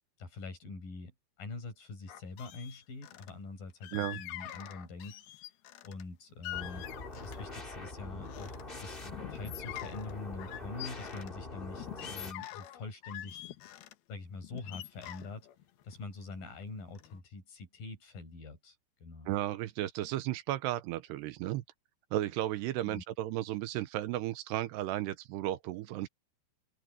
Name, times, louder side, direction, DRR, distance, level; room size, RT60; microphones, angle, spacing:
voice 1, 0.2-5.2 5.8-6.9 7.2-13.4 14.1-15.5 15.8-18.8 19.0-19.4 22.9-23.0, left 3 dB, 55° left, 7.3 m, -44 dB
sound 1, 2.1-3.3 3.8-6.0 6.4-7.6 8.0-8.6 9.0-11.3 11.8-13.9 14.4-16.6 16.9-17.2, left 14 dB, 70° left, 2.9 m, -45 dB
sound 2, 6.5-12.3, left 2 dB, 20° left, 1.4 m, -44 dB
voice 2, 19.3-21.6 22.1-26.1, right 14 dB, 80° right, 2.9 m, -34 dB
omnidirectional pair, 4.9 m